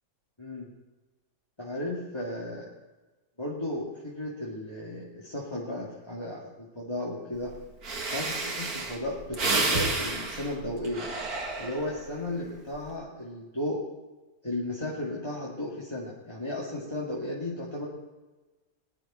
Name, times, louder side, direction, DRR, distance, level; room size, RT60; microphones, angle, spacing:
voice 1, 1.6-2.7 3.4-7.5 8.1-11.1 11.6-13.8 14.4-17.9, left 1 dB, 15° left, -6 dB, 2.3 m, -34 dB
Breathing, 7.5-7.6 7.8-12.1 12.6-12.9, right 3 dB, 70° right, 2.3 m, -30 dB
20.0 x 11.0 x 4.4 m, 1.2 s
omnidirectional pair, 1.7 m